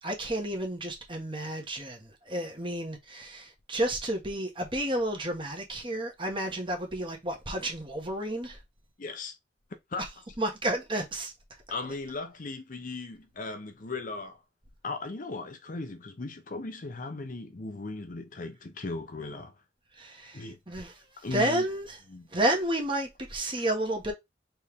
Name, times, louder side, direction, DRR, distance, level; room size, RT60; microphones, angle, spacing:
voice 1, 0.0-8.6 10.4-11.3 20.0-20.9 21.3-22.0 22.3-24.1, right 1 dB, 25° right, 1.3 m, -31 dB
voice 2, 9.0-9.4 9.9-10.1 11.7-14.4 14.8-19.6 20.3-20.6 21.2-21.6 22.1-22.3, left 3 dB, 45° left, 0.7 m, -37 dB
4.3 x 3.2 x 3.6 m
head